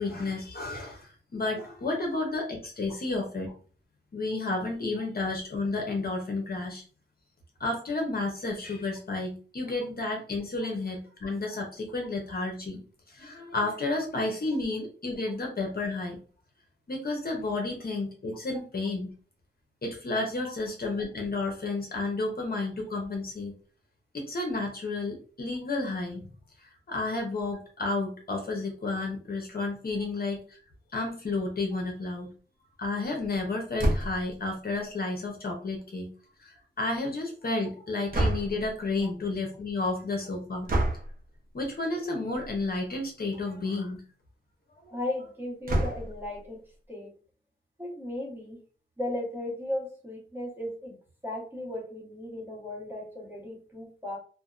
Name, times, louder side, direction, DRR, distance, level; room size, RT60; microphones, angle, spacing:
voice 1, 0.0-3.5 4.1-6.8 7.6-12.8 13.1-16.2 16.9-19.1 19.8-23.5 24.1-26.3 26.6-30.6 30.9-32.3 32.8-36.1 36.4-40.7 41.5-44.0 44.8-45.0, left 2 dB, 50° left, 1 dB, 0.7 m, -31 dB
sound 1, 33.8-34.3 38.1-38.7 40.7-41.1 42.3-42.6 43.0-43.1 43.3-43.4 45.7-46.3, right 1 dB, 45° right, 0.6 m, -27 dB
voice 2, 44.9-46.6 46.9-47.1 47.8-48.6 49.0-51.0 51.2-54.2, left 1 dB, 10° right, -3 dB, 1.1 m, -36 dB
2.6 x 2.1 x 2.4 m, 0.40 s
wide cardioid pair, 85°, 21 cm